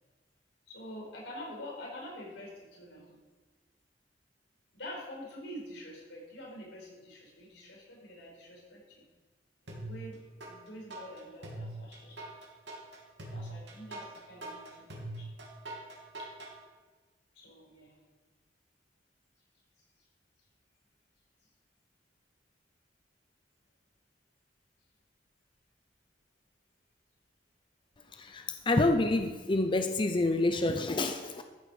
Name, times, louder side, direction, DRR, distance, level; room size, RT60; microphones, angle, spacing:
voice 1, 0.7-3.2 4.7-9.0 9.6-12.2 13.3-15.3 16.2-16.3 17.3-17.9, equal, 85° left, -2 dB, 4.8 m, -46 dB
sound 1, 9.7-10.5 10.9-16.5, right 2 dB, 75° right, 3.0 m, -42 dB
voice 2, 28.2-31.4, left 2 dB, 25° left, 7 dB, 0.6 m, -28 dB
13.5 x 8.0 x 6.5 m, 1.3 s
head